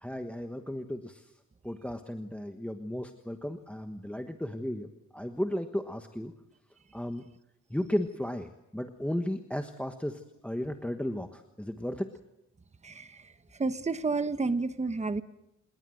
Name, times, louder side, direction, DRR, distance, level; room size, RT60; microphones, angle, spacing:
voice 1, 0.0-1.3 1.6-6.3 6.9-7.3 7.7-12.1, left 1 dB, 5° left, 7 dB, 1.3 m, -35 dB
voice 2, 13.6-15.2, right 3 dB, 25° right, 11 dB, 1.1 m, -30 dB
28.0 x 21.0 x 7.8 m, 0.89 s
wide cardioid pair, 135°, 29 cm